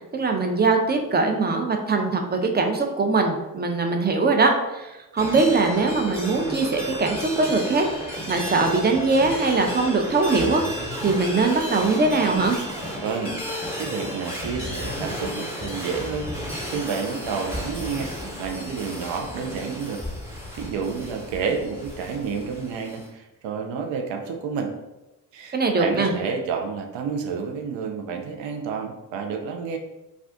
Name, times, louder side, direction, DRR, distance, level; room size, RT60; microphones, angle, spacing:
voice 1, 0.1-7.9 8.3-10.6 11.0-12.6 25.5-26.1, right 3 dB, 20° right, 4 dB, 0.5 m, -21 dB
sound 1, 5.2-23.1, equal, 5° right, 1.0 m, -33 dB
voice 2, 13.0-13.4 13.8-18.1 18.4-20.0 20.3-24.7 25.3-29.8, right 5 dB, 75° right, 3 dB, 0.6 m, -30 dB
2.4 x 2.4 x 3.4 m, 0.99 s
hypercardioid pair, 40°, 45 cm